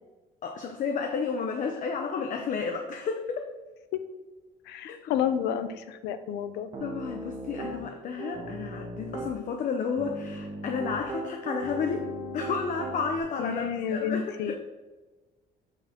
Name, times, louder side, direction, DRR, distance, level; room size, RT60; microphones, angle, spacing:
voice 1, 0.4-3.4 4.8-5.0 6.8-14.6, left 5 dB, 50° left, 4 dB, 0.8 m, -32 dB
voice 2, 4.7-6.7 13.4-14.6, left 8 dB, 85° left, 11 dB, 0.6 m, -30 dB
Piano, 6.7-7.8 8.2-9.3 10.0-13.2, right 1 dB, 40° right, 1.5 m, -37 dB
7.9 x 4.8 x 3.6 m, 1.2 s
cardioid pair, 110°, 17 cm